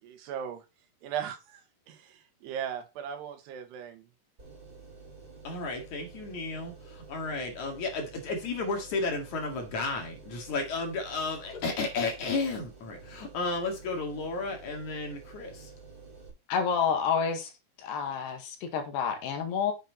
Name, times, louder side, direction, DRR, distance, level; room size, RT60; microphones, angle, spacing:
voice 1, 0.0-0.7 1.0-4.1, right 8 dB, 75° right, 3.4 m, -38 dB
sound 1, 4.4-16.3, right 4 dB, 20° right, 5.1 m, -50 dB
voice 2, 5.4-15.7, left 3 dB, 50° left, 2.9 m, -33 dB
voice 3, 16.5-17.5 17.8-19.7, left 6 dB, 75° left, 3.8 m, -29 dB
9.0 x 7.3 x 4.0 m
omnidirectional pair, 5.0 m